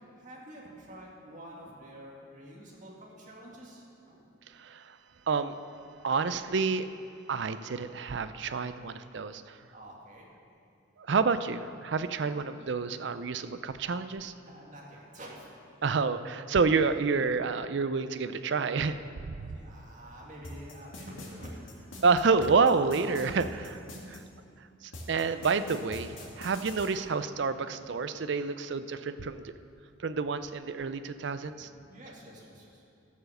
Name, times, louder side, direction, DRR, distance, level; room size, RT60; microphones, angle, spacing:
voice 1, 0.2-4.2 9.7-10.3 12.8-12.9 14.4-15.5 19.2-21.9 26.0-26.3 27.7-28.1 31.6-32.9, right 1 dB, 40° right, -3 dB, 2.1 m, -49 dB
voice 2, 4.6-5.0 5.3-5.6 6.0-6.9 7.3-9.6 11.1-14.3 15.8-19.0 19.3-19.5 22.0-23.8 24.1-24.2 24.8-29.5 30.0-31.7, right 4 dB, 60° right, 11 dB, 0.4 m, -29 dB
sound 1, 20.4-24.2 24.9-26.9, left 1 dB, 85° left, 2.1 m, -43 dB
13.0 x 7.0 x 6.6 m, 2.5 s
head